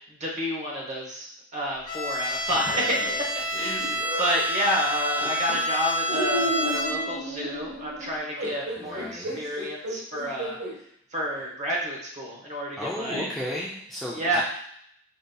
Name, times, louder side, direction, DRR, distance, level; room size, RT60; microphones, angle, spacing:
voice 1, 0.1-3.1 3.6-10.6 11.1-13.3 14.1-14.4, equal, 35° right, -2 dB, 0.9 m, -30 dB
Bowed string instrument, 1.9-7.3, equal, 45° left, 0.9 m, -28 dB
sound 1, 2.5-4.4 5.2-5.6 6.1-10.8 11.4-11.5 13.1-13.3, equal, 75° right, 1.1 m, -33 dB
voice 2, 8.8-9.6 12.8-14.4, equal, ahead, -6 dB, 0.4 m, -35 dB
5.1 x 2.7 x 2.2 m, 0.69 s
head